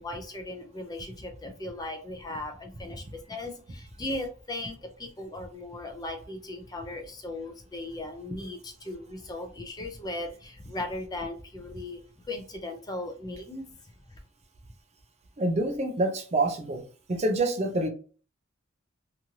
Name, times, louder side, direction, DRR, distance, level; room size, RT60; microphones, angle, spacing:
voice 1, 0.0-12.0 12.3-13.7, left 2 dB, 20° left, 4 dB, 0.4 m, -37 dB
voice 2, 15.4-16.8 17.1-17.9, right 2 dB, 35° right, 5 dB, 0.5 m, -26 dB
3.0 x 2.5 x 2.7 m, 0.40 s
head